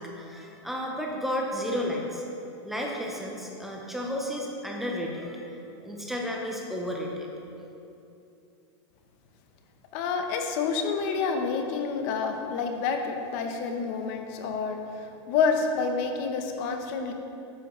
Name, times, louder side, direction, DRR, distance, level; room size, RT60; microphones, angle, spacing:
voice 1, 0.0-2.2 2.6-7.3, equal, ahead, -1 dB, 0.5 m, -32 dB
voice 2, 9.9-17.1, left 5 dB, 35° left, 5 dB, 0.7 m, -28 dB
10.0 x 7.5 x 3.0 m, 2.8 s
supercardioid pair, 170°, 15 cm